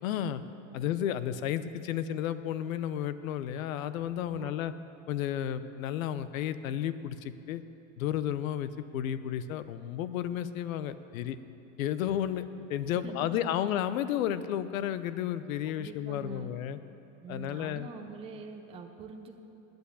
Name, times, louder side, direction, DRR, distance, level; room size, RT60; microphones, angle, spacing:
voice 1, 0.0-0.4 0.7-4.7 5.1-7.6 8.0-11.4 11.8-16.8 17.3-17.9, left 10 dB, 75° left, 13 dB, 0.8 m, -32 dB
voice 2, 4.2-4.7 12.9-13.6 15.8-16.5 17.2-19.4, right 4 dB, 15° right, 3 dB, 0.6 m, -44 dB
10.5 x 8.0 x 8.3 m, 2.8 s
supercardioid pair, 130°, 41 cm